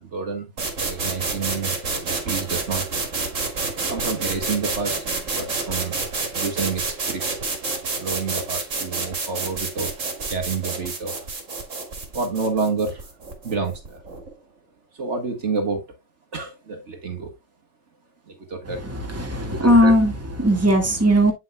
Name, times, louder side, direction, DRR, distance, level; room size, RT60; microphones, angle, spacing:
voice 1, 0.0-0.5 0.8-1.7 2.0-2.8 3.9-5.0 5.3-6.0 6.3-6.8 7.1-7.2 8.0-9.9 10.3-11.1 12.1-13.0 13.4-14.0 15.0-15.8 16.3-17.3 18.3-18.8, right 4 dB, 65° right, 2.0 m, -28 dB
sound 1, 0.6-14.3, right 3 dB, 85° right, 2.4 m, -29 dB
voice 2, 18.8-21.3, equal, 10° right, 1.8 m, -18 dB
8.3 x 7.7 x 2.3 m
omnidirectional pair, 1.3 m